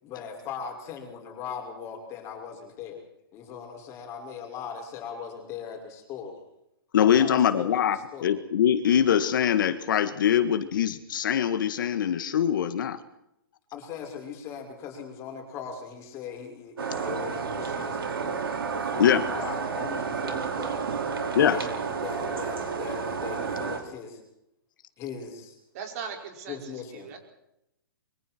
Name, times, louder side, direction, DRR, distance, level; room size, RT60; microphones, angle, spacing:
voice 1, 0.0-3.0 3.3-6.4 7.1-8.3 13.7-21.1 21.3-24.2 25.0-25.6 26.5-27.1, left 6 dB, 25° left, 2 dB, 6.0 m, -39 dB
voice 2, 6.9-13.0 19.0-19.2 21.4-21.6, left 9 dB, 60° left, 10 dB, 1.8 m, -23 dB
sound 1, 16.8-23.8, right 5 dB, 90° right, 5.0 m, -31 dB
voice 3, 25.7-27.2, right 6 dB, 45° right, 3 dB, 5.6 m, -39 dB
26.0 x 24.0 x 4.6 m, 0.82 s
hypercardioid pair, 155°, 12 cm